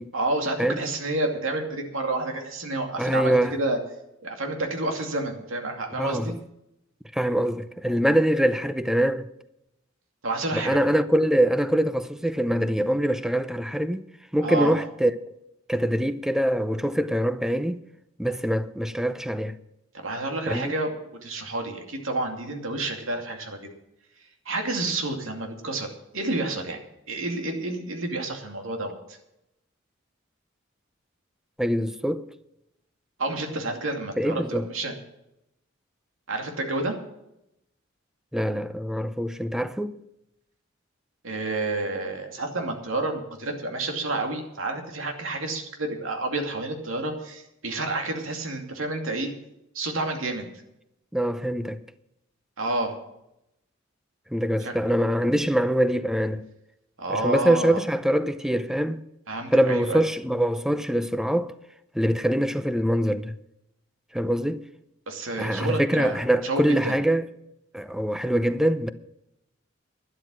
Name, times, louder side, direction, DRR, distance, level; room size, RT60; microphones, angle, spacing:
voice 1, 0.1-3.8 4.2-6.3 7.9-8.0 10.2-10.8 14.4-14.8 19.9-23.7 24.5-25.9 26.1-26.8 27.1-29.0 33.2-34.9 36.3-37.0 41.2-49.3 49.7-50.5 52.6-52.9 54.6-54.7 57.0-57.8 59.3-60.0 65.1-67.0, right 2 dB, 80° right, 2.5 m, -29 dB
voice 2, 3.0-3.6 5.9-6.3 7.1-9.3 10.5-15.1 15.7-17.8 18.2-19.6 20.5-20.7 31.6-32.3 34.2-34.7 38.3-40.0 51.1-51.8 54.3-56.5 57.1-59.0 59.5-61.5 61.9-63.4 64.1-64.6 65.4-67.3 67.7-68.9, equal, 5° right, 0.6 m, -24 dB
12.0 x 11.0 x 6.2 m
head